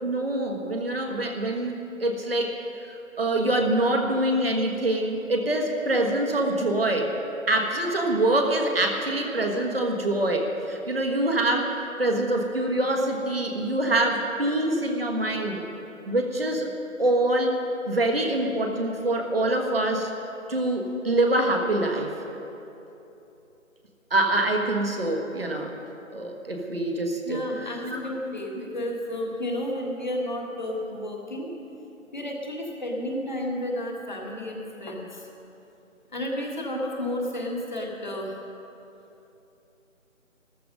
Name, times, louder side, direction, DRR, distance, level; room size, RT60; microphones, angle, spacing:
voice 1, 0.0-7.1 7.5-15.6 16.1-16.7 17.0-17.6 17.8-20.1 20.5-22.1 24.1-25.7 26.1-28.1, right 1 dB, 45° right, 2 dB, 1.5 m, -25 dB
voice 2, 27.3-31.5 32.1-35.3 36.1-38.5, left 1 dB, 35° left, 0 dB, 1.7 m, -32 dB
14.0 x 13.5 x 5.2 m, 2.9 s
figure-of-eight pair, 170°, 40 cm